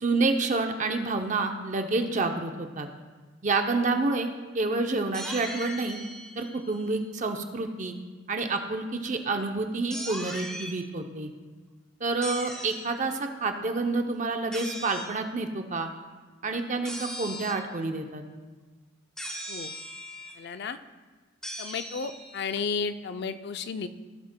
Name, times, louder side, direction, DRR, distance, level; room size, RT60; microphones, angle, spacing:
voice 1, 0.0-2.9 3.4-4.3 4.5-6.0 6.4-7.9 8.3-11.3 12.0-15.9 16.4-18.2, right 3 dB, 40° right, 5 dB, 0.6 m, -28 dB
sound 1, 5.1-7.1 9.9-10.7 12.2-12.9 14.5-15.1 16.9-17.7 19.2-20.3 21.4-22.6, equal, 5° left, 1.0 m, -39 dB
voice 2, 20.4-20.8 21.6-23.9, left 5 dB, 55° left, 10 dB, 0.4 m, -33 dB
16.0 x 7.5 x 2.2 m, 1.3 s
head